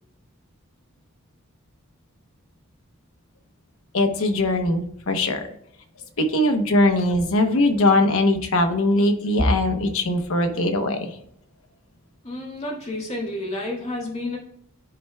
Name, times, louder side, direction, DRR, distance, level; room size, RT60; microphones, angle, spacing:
voice 1, 3.9-5.4 6.2-11.1, left 1 dB, 65° left, 6 dB, 0.9 m, -20 dB
voice 2, 12.2-14.4, left 1 dB, 30° left, -3 dB, 1.7 m, -30 dB
10.0 x 4.4 x 2.2 m, 0.72 s
head